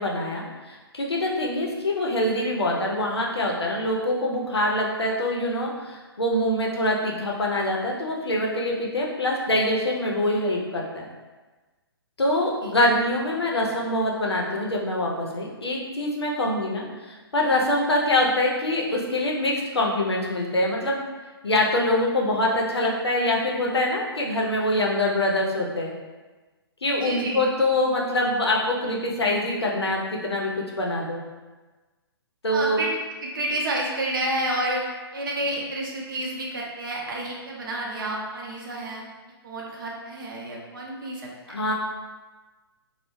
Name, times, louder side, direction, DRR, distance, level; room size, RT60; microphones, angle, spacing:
voice 1, 0.0-11.1 12.2-21.0 21.4-25.9 26.8-31.2 32.4-32.8 41.5-41.7, left 1 dB, 80° left, -1 dB, 0.5 m, -24 dB
voice 2, 27.0-27.5 32.5-39.0 39.4-41.6, right 1 dB, 55° right, -2 dB, 0.6 m, -30 dB
2.1 x 2.0 x 3.0 m, 1.2 s
figure-of-eight pair, 125°, 13 cm